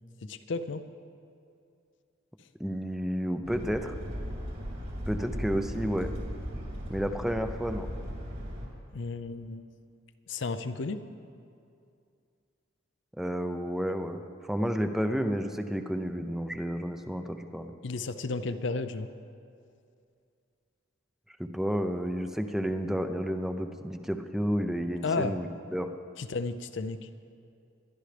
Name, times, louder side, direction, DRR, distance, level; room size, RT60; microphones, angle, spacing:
voice 1, 0.3-0.8 8.9-9.6 10.3-11.0 17.8-19.1 25.0-25.4 26.2-27.1, left 3 dB, 65° left, 10 dB, 0.5 m, -33 dB
voice 2, 2.6-3.9 5.1-6.1 6.9-7.9 13.2-17.7 21.4-25.9, equal, ahead, 6 dB, 0.5 m, -31 dB
sound 1, 3.5-8.7, equal, 55° right, 3.0 m, -37 dB
22.0 x 11.5 x 3.4 m, 2.5 s
head